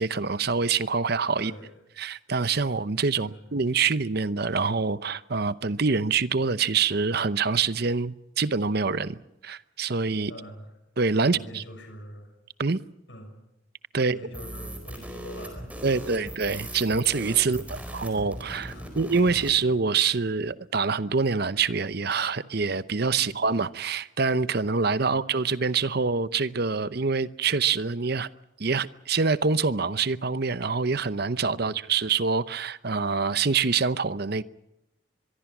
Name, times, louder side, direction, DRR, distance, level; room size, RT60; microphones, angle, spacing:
voice 1, 0.0-1.5 2.0-10.3 11.0-11.6 12.6-12.8 13.9-14.2 15.8-28.3 28.6-34.4, right 5 dB, 50° right, 15 dB, 0.8 m, -25 dB
voice 2, 1.4-1.7 3.1-3.4 10.3-10.7 11.2-12.3 13.1-13.3 14.0-16.3 17.4-17.8 18.7-19.0 19.3-19.4 23.2-23.3 31.7-31.8, equal, 65° left, 4 dB, 6.6 m, -44 dB
sound 1, 14.3-19.6, right 1 dB, 5° right, 4.4 m, -39 dB
24.5 x 23.0 x 6.1 m, 0.88 s
head